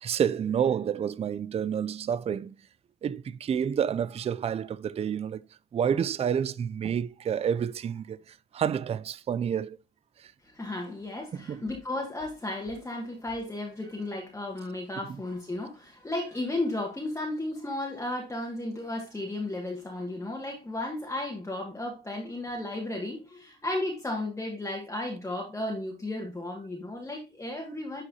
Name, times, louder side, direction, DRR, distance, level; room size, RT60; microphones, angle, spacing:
voice 1, 0.0-2.6 3.0-5.4 5.7-9.8 10.2-10.3 11.3-11.6, right 8 dB, 30° right, 0.4 m, -29 dB
voice 2, 10.4-28.0, left 1 dB, 15° left, 2.0 m, -34 dB
11.0 x 4.8 x 2.8 m
cardioid pair, 90°, 21 cm